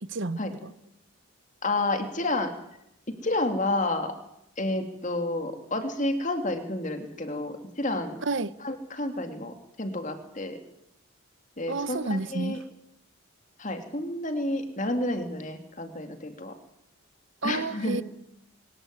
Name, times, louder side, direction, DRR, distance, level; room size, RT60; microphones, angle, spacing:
voice 1, 0.0-0.7 8.2-8.5 11.7-12.6 17.4-18.0, right 3 dB, 55° right, 0.9 m, -30 dB
voice 2, 1.6-2.5 3.2-4.1 4.6-8.2 8.6-10.6 11.6-12.6 13.6-16.5 17.4-18.0, left 2 dB, 35° left, 2.8 m, -30 dB
24.0 x 15.0 x 9.7 m
head